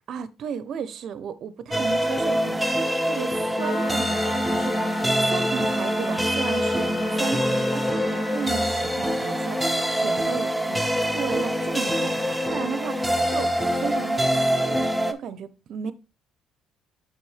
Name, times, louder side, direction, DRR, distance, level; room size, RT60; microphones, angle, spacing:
voice 1, 0.1-14.8 15.1-15.9, right 7 dB, 60° right, 0.6 m, -34 dB
sound 1, 1.7-15.1, equal, 5° right, 0.8 m, -25 dB
Wind instrument woodwind instrument, 3.6-8.7, equal, 75° left, 3.1 m, -31 dB
6.3 x 5.9 x 3.2 m
supercardioid pair, 75°, 0 cm